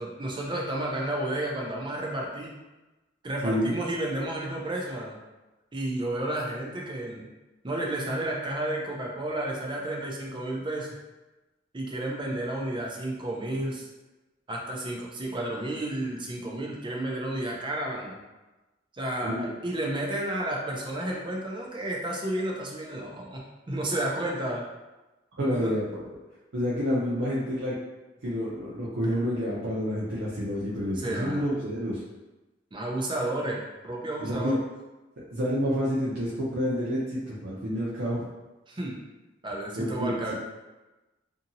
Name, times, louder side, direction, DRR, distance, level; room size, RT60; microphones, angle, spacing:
voice 1, 0.0-2.5 3.2-5.2 5.7-7.3 7.6-10.9 11.7-13.9 14.5-18.2 18.9-23.4 23.7-24.6 25.5-25.7 31.0-31.4 32.7-34.6 38.7-39.0 39.4-40.3, right 1 dB, 25° right, -2 dB, 0.5 m, -31 dB
voice 2, 3.4-3.7 19.2-19.5 25.4-26.1 26.5-27.7 28.2-32.0 34.2-34.6 35.3-38.2 39.8-40.3, equal, 75° right, -8 dB, 0.6 m, -29 dB
2.7 x 2.7 x 2.6 m, 1.1 s
head